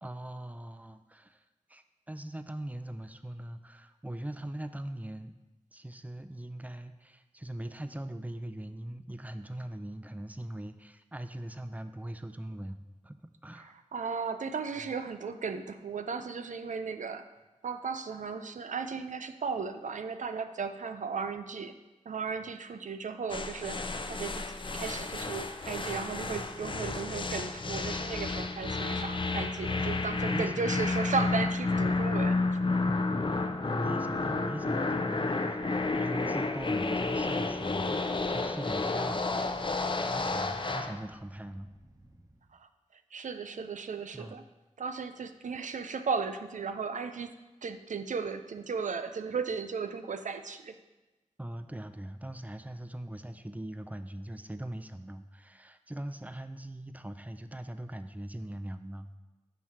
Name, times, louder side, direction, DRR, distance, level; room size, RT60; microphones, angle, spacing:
voice 1, 0.0-1.4 1.7-5.3 5.7-12.8 13.0-13.7 29.4-30.0 30.2-30.9 31.1-31.2 32.8-39.8 40.0-41.7 44.1-44.4 51.4-59.2, right 1 dB, 10° right, 9 dB, 0.4 m, -41 dB
voice 2, 13.6-17.3 17.6-21.7 22.1-23.8 24.1-24.4 24.7-32.4 42.5-44.4 44.8-47.3 47.6-50.7, right 5 dB, 80° right, 9 dB, 0.4 m, -35 dB
sound 1, 23.3-41.0, left 3 dB, 40° left, 0.5 m, -31 dB
Wind, 35.6-42.5, right 1 dB, 30° right, 0.9 m, -51 dB
7.3 x 3.1 x 5.6 m, 1.1 s
cardioid pair, 40°, 13 cm